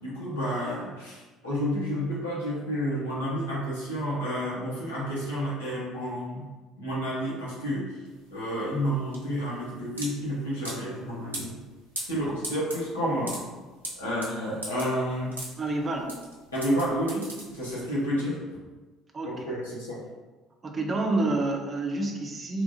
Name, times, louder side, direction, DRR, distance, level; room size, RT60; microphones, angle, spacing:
voice 1, 0.0-6.5 6.8-8.0 8.3-11.6 12.1-13.4 14.0-15.3 16.5-18.4 19.2-20.0, equal, 80° left, -7 dB, 0.9 m, -30 dB
sound 1, 8.1-18.0, right 1 dB, 85° right, 0.5 m, -40 dB
voice 2, 15.6-16.2 19.1-19.6 20.6-22.6, right 2 dB, 30° right, 1 dB, 0.5 m, -28 dB
3.0 x 2.4 x 2.6 m, 1.3 s
figure-of-eight pair, 55°, 0 cm